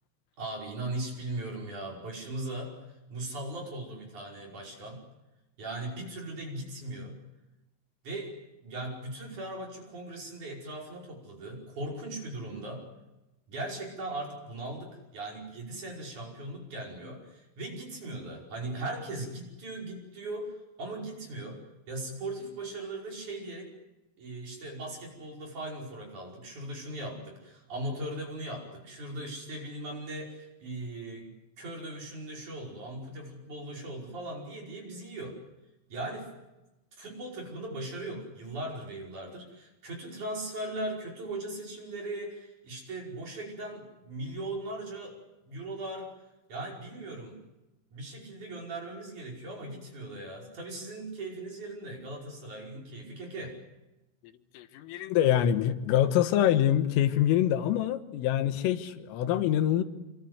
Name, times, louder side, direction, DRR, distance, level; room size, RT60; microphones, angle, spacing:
voice 1, 0.4-2.8 3.1-5.0 5.6-7.2 8.0-8.3 8.6-12.9 13.5-21.6 21.9-23.7 24.2-31.3 31.6-35.4 35.9-36.3 37.0-45.2 45.5-46.1 46.5-47.4 47.9-53.6, right 1 dB, 40° right, -1 dB, 6.6 m, -39 dB
voice 2, 54.6-59.8, left 11 dB, 85° left, 9 dB, 4.0 m, -25 dB
27.0 x 24.0 x 8.1 m, 1.0 s
omnidirectional pair, 5.8 m